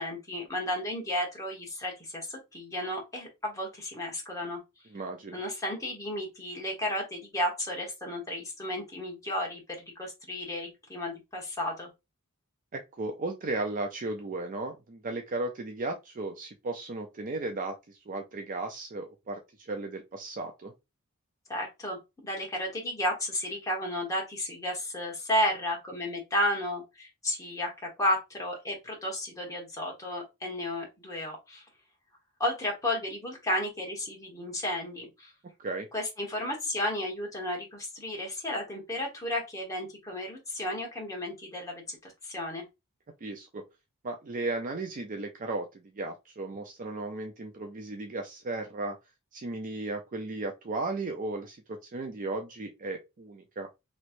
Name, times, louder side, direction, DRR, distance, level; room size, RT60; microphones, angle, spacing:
voice 1, 0.0-4.6 5.3-11.9 21.5-22.0 22.2-31.6 32.4-35.3 35.9-42.6, left 1 dB, 15° left, 1.2 m, -33 dB
voice 2, 4.9-5.4 12.7-20.7 35.6-35.9 43.2-43.6 44.0-49.0 49.3-53.7, right 2 dB, 35° right, 0.5 m, -35 dB
3.1 x 3.1 x 2.5 m
head